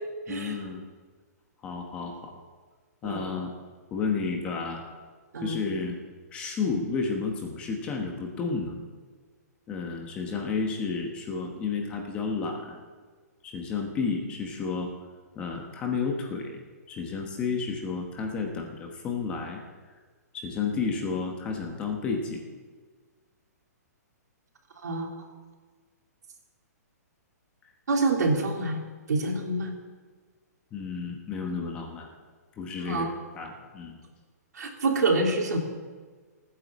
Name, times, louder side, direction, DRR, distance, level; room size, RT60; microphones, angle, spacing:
voice 1, 0.3-0.8 1.6-2.4 3.0-3.5 3.9-4.8 5.4-6.0 6.3-8.8 9.7-12.8 13.4-14.9 15.3-16.6 16.9-19.6 20.3-22.4 30.7-32.1 32.6-33.1 33.3-34.0, left 4 dB, 10° left, 2 dB, 1.1 m, -31 dB
voice 2, 27.9-28.8 29.1-29.7 32.9-33.1 34.5-35.6, right 3 dB, 80° right, 2 dB, 3.2 m, -26 dB
16.5 x 9.5 x 7.3 m, 1.5 s
hypercardioid pair, 180°, 9 cm